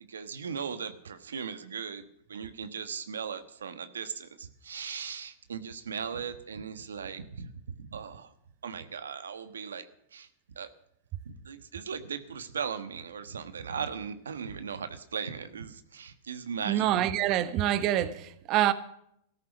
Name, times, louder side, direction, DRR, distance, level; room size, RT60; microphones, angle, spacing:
voice 1, 0.1-7.5 7.8-8.3 8.6-10.3 10.6-10.7 11.2-16.9, right 6 dB, 90° right, 1.3 m, -38 dB
voice 2, 16.6-18.7, right 12 dB, 40° right, 1.2 m, -26 dB
14.0 x 13.5 x 6.1 m
hypercardioid pair, 115°, 0 cm